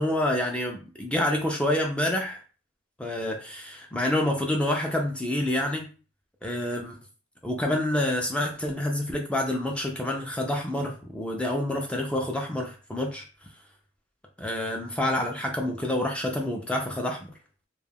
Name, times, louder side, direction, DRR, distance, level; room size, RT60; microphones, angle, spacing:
voice 1, 0.0-2.4 3.0-5.9 6.4-7.0 7.4-13.2 14.4-17.3, left 1 dB, 5° left, 1 dB, 0.4 m, -28 dB
2.3 x 2.1 x 3.3 m, 0.36 s
head